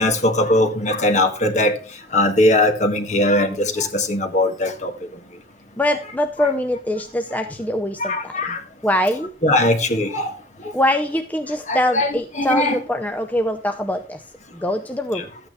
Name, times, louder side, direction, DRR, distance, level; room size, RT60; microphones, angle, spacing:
voice 1, 0.0-1.8 2.1-4.9 8.0-8.6 9.4-10.3 11.7-12.8 15.1-15.2, left 1 dB, 40° left, 1.7 m, -20 dB
voice 2, 5.8-8.6 8.8-9.3 10.7-14.2 14.5-15.3, left 1 dB, 10° left, 0.6 m, -23 dB
13.0 x 9.0 x 3.1 m
head